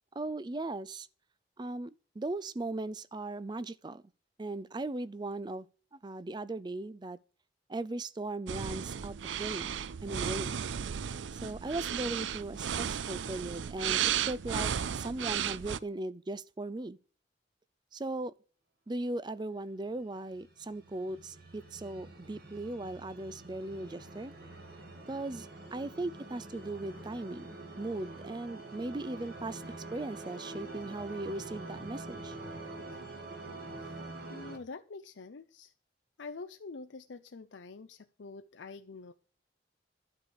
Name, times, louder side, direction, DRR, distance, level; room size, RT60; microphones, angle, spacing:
voice 1, 0.2-1.1 1.6-4.0 4.4-5.7 5.9-7.2 7.7-10.6 11.3-17.0 17.9-18.3 18.9-24.3 25.1-29.6 29.9-32.4, right 2 dB, 25° right, 0.4 m, -38 dB
sound 1, 8.5-15.8, right 8 dB, 85° right, 0.5 m, -34 dB
sound 2, 20.2-34.6, right 2 dB, 55° right, 2.5 m, -46 dB
voice 2, 34.3-35.7 36.2-39.1, left 4 dB, 80° left, 0.6 m, -46 dB
11.5 x 4.9 x 7.9 m
head